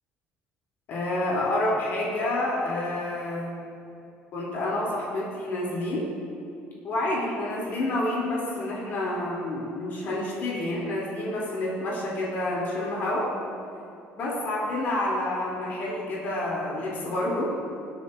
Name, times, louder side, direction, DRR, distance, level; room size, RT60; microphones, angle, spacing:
voice 1, 0.9-3.6 4.3-6.1 6.8-13.3 14.2-17.5, left 1 dB, 55° left, -5 dB, 2.8 m, -28 dB
19.5 x 8.7 x 2.5 m, 2.6 s
cardioid pair, 120°, 4 cm